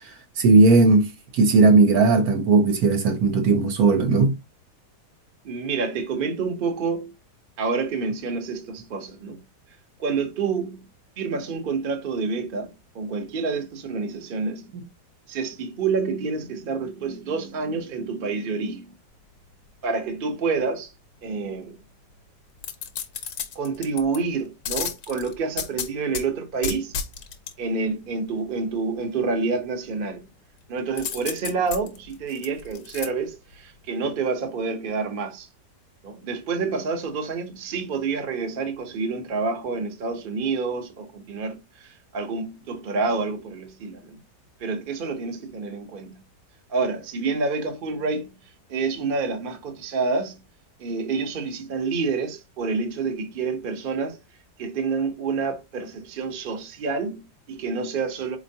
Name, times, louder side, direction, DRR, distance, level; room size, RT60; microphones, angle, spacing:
voice 1, 0.4-4.3 14.7-14.8, right 3 dB, 65° right, 1.1 m, -17 dB
voice 2, 5.4-7.1 7.6-9.4 10.0-10.8 11.2-14.7 15.3-18.9 19.8-20.9 21.2-21.8 23.5-26.9 27.6-30.3 30.7-35.5 36.0-44.2 44.6-46.2 46.7-48.3 48.7-50.4 50.8-54.2 54.6-58.4, right 4 dB, 45° right, 0.7 m, -28 dB
sound 1, 22.6-24.2 24.7-26.2 26.6-27.5 31.0-33.1 33.5-33.6, left 7 dB, 65° left, 1.2 m, -32 dB
4.3 x 2.9 x 2.7 m
omnidirectional pair, 1.8 m